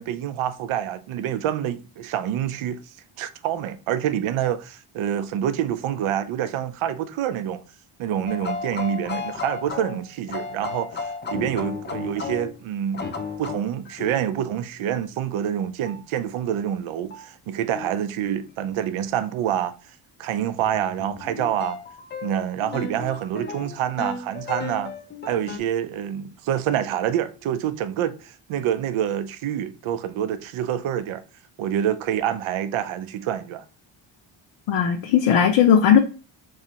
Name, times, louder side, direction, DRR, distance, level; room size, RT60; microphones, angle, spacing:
voice 1, 0.0-2.8 3.2-7.6 8.0-13.1 13.4-19.7 20.2-21.8 22.2-24.9 25.2-31.2 31.6-33.7, right 10 dB, 75° right, 0.6 m, -27 dB
sound 1, 8.3-12.6 12.9-14.2 15.9-16.0 17.1-17.3 17.7-18.0 20.2-25.6, left 5 dB, 25° left, 0.3 m, -34 dB
voice 2, 34.7-36.0, left 8 dB, 75° left, 0.6 m, -17 dB
3.7 x 3.2 x 2.8 m
wide cardioid pair, 160°, 49 cm